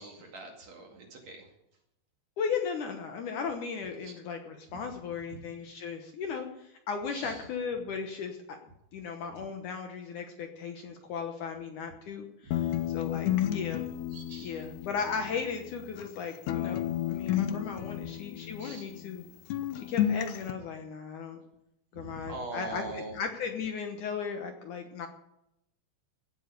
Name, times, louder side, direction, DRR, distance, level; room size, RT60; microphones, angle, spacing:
voice 1, 0.0-1.5 4.0-4.1 7.1-7.4 14.1-14.6 17.8-18.1 18.6-18.8 21.9-23.2, right 2 dB, 50° right, 1 dB, 3.0 m, -43 dB
voice 2, 2.4-8.6 8.9-13.9 14.4-19.2 19.7-21.4 21.9-25.1, left 6 dB, 65° left, 4 dB, 2.2 m, -36 dB
sound 1, 12.5-16.2 16.5-19.2 19.5-20.5, left 11 dB, 85° left, 1.7 m, -32 dB
17.0 x 8.2 x 6.7 m, 0.83 s
omnidirectional pair, 4.6 m